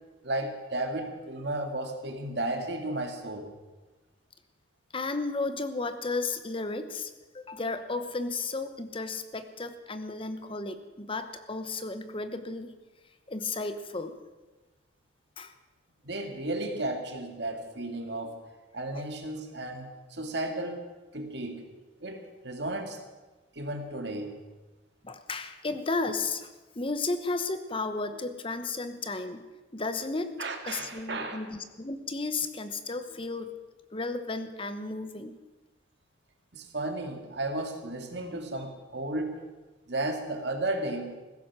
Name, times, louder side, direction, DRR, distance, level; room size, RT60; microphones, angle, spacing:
voice 1, 0.2-3.5 16.0-18.4 18.7-20.9 21.1-21.6 22.0-23.0 23.5-24.3 30.4-31.4 36.5-39.4 39.9-41.2, right 2 dB, 60° right, 4 dB, 2.1 m, -34 dB
voice 2, 4.9-12.7 13.3-14.2 15.4-15.5 25.0-29.4 29.7-30.4 30.7-33.5 33.9-35.4, left 3 dB, 30° left, 10 dB, 1.0 m, -33 dB
16.0 x 14.5 x 6.1 m, 1.2 s
head